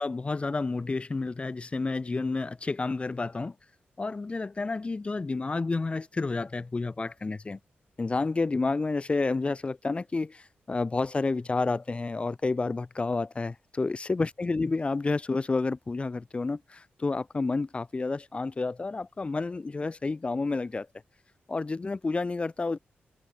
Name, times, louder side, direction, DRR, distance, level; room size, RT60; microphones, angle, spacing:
voice 1, 0.0-3.5 4.0-7.6 8.0-20.9 21.5-22.8, left 3 dB, 30° left, 1.5 m, -30 dB
open air
cardioid pair, 95°, 4 cm